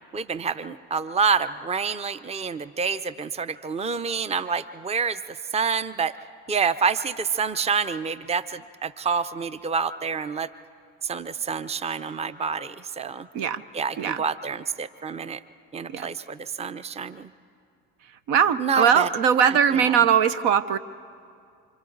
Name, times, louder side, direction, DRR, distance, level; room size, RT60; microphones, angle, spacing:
voice 1, 0.1-5.2 5.5-6.1 6.5-10.5 11.0-13.3 13.7-15.4 15.7-17.3 18.6-19.1 19.8-20.0, right 5 dB, 15° right, 14 dB, 0.6 m, -27 dB
voice 2, 18.3-20.8, right 8 dB, 70° right, 14 dB, 0.9 m, -20 dB
28.5 x 25.5 x 4.0 m, 2.4 s
hypercardioid pair, 60°, 41 cm